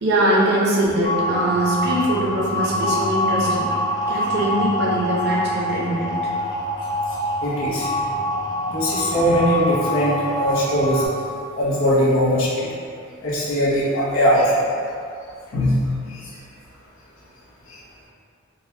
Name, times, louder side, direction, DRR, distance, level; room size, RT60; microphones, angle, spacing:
voice 1, 0.0-3.7 4.1-6.2, right 1 dB, 50° right, -5 dB, 0.6 m, -22 dB
sound 1, 1.0-11.1, left 1 dB, 20° left, 0.6 m, -25 dB
voice 2, 7.4-7.9 8.7-11.1 11.6-12.7 13.2-14.7 15.5-15.8 16.1-16.2 17.7-17.8, equal, 70° left, -8 dB, 0.9 m, -20 dB
3.9 x 2.2 x 2.7 m, 2.4 s
head